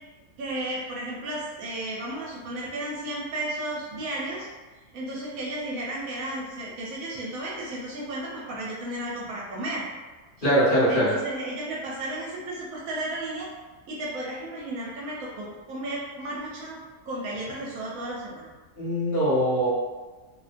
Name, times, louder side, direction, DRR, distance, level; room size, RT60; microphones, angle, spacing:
voice 1, 0.4-4.5 4.9-9.8 10.9-13.5 13.9-16.8 17.0-18.5, right 1 dB, 70° right, -4 dB, 1.0 m, -33 dB
voice 2, 10.4-11.1 18.8-19.7, equal, 40° left, -12 dB, 1.0 m, -22 dB
2.6 x 2.1 x 2.5 m, 1.3 s
omnidirectional pair, 1.6 m